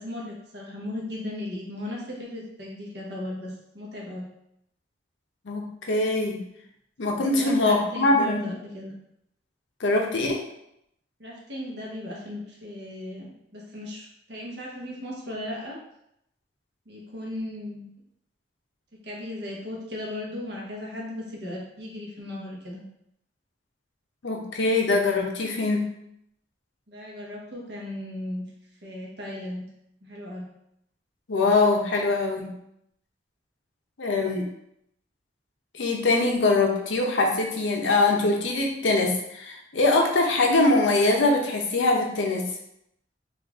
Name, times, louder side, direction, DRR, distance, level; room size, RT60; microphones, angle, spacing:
voice 1, 0.0-4.3 7.2-8.9 11.2-15.8 16.9-17.9 19.0-22.8 26.9-28.5 28.8-29.6 30.0-30.5, left 1 dB, 65° right, -3 dB, 1.0 m, -36 dB
voice 2, 5.5-6.4 7.0-8.4 9.8-10.4 24.2-25.9 31.3-32.5 34.0-34.4 35.7-42.4, left 2 dB, 90° left, 1 dB, 0.7 m, -23 dB
4.0 x 2.5 x 3.5 m, 0.78 s
head